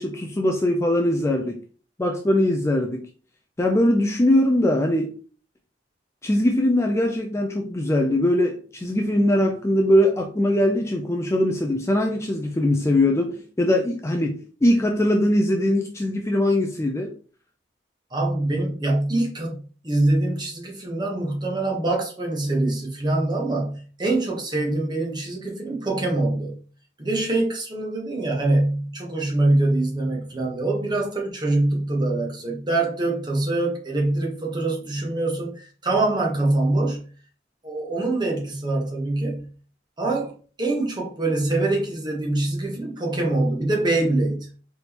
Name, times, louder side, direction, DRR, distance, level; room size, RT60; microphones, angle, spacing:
voice 1, 0.0-1.6 2.0-3.0 3.6-5.1 6.2-17.1, left 1 dB, 15° left, 0.4 m, -21 dB
voice 2, 18.1-26.6 27.0-37.0 37.6-39.5 40.0-40.3 40.6-44.5, right 2 dB, 25° right, 1.1 m, -24 dB
4.2 x 3.5 x 2.9 m
head